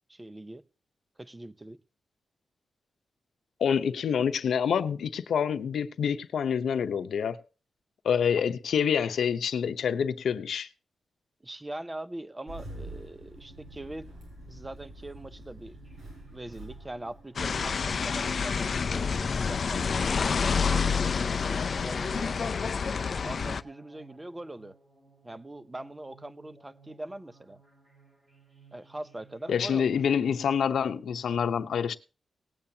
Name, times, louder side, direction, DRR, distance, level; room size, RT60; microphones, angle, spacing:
voice 1, 0.1-0.6 1.2-1.8 11.4-14.1 14.5-15.8 16.3-22.4 23.2-24.7 25.2-27.6 28.7-29.9, right 1 dB, 15° right, 0.6 m, -42 dB
voice 2, 3.6-7.4 8.0-10.7 29.5-32.0, left 7 dB, 80° left, 0.8 m, -27 dB
Engine starting, 12.5-18.0, right 1 dB, 80° right, 5.0 m, -46 dB
sound 1, 13.4-29.7, right 4 dB, 40° right, 4.8 m, -59 dB
sound 2, 17.4-23.6, left 5 dB, 45° left, 0.5 m, -28 dB
19.0 x 8.8 x 2.8 m
wide cardioid pair, 140°, 0 cm